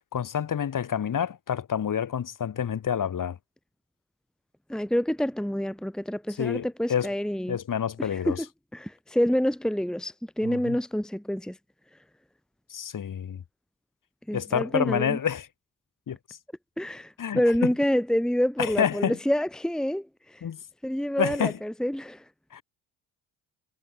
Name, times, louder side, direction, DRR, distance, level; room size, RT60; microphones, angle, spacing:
voice 1, 0.1-3.4 6.4-7.1 7.5-8.4 10.4-10.8 12.7-13.4 14.3-15.5 16.1-16.4 17.2-17.7 18.6-19.2 20.4-20.6 21.2-21.6 22.5-22.6, left 8 dB, 45° left, 3.2 m, -28 dB
voice 2, 4.7-7.6 8.0-8.5 8.7-11.6 14.3-15.2 16.8-20.4 20.8-22.2, equal, ahead, 1.5 m, -27 dB
hypercardioid pair, 50°, 43 cm